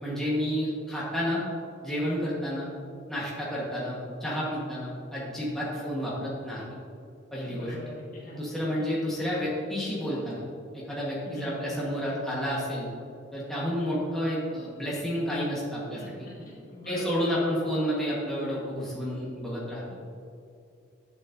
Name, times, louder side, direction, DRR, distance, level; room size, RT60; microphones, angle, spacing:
voice 1, 0.0-1.4 1.8-2.7 3.1-6.6 7.3-7.7 8.3-10.4 10.7-12.9 13.3-16.3 16.9-19.9, equal, ahead, -7 dB, 1.4 m, -30 dB
voice 2, 7.4-8.4 11.3-11.6 16.0-16.3 16.7-17.4 19.9-20.0, equal, 45° left, -4 dB, 1.7 m, -40 dB
11.0 x 7.0 x 2.7 m, 2.5 s
head